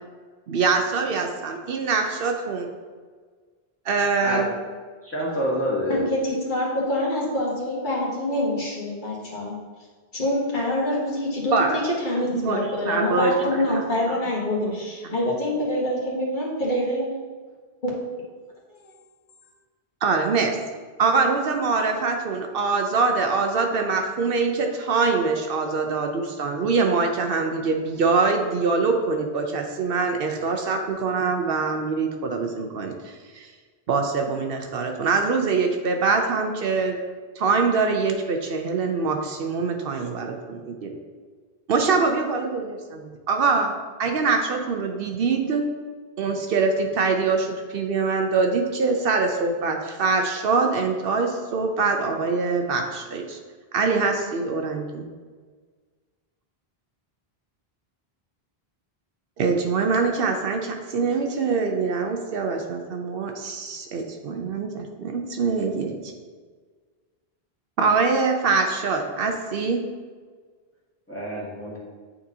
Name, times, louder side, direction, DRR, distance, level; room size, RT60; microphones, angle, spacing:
voice 1, 0.5-2.7 3.9-4.5 11.5-11.8 12.3-12.6 12.9-13.8 14.6-14.8 20.0-20.6 21.0-33.5 33.9-37.0 37.4-40.9 41.7-43.7 44.0-45.6 46.2-53.4 53.7-55.0 59.4-66.0 67.8-69.8, right 4 dB, 70° right, 4 dB, 0.8 m, -24 dB
voice 2, 5.0-6.0 71.1-71.8, equal, 15° left, -6 dB, 1.6 m, -27 dB
voice 3, 5.9-9.6 10.1-17.1 17.8-17.9 18.8-18.9, left 1 dB, 50° left, -4 dB, 1.3 m, -26 dB
8.5 x 4.0 x 2.7 m, 1.5 s
omnidirectional pair, 1.0 m